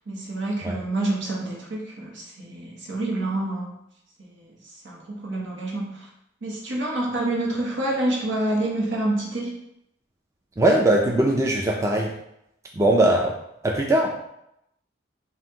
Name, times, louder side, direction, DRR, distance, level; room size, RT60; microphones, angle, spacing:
voice 1, 0.1-3.8 4.4-4.5 4.8-6.1 6.4-9.5, right 1 dB, 85° right, -3 dB, 1.2 m, -27 dB
voice 2, 10.6-12.1 12.7-13.3 13.6-14.1, right 1 dB, 15° right, 0 dB, 0.3 m, -20 dB
5.5 x 2.5 x 2.8 m, 0.79 s
head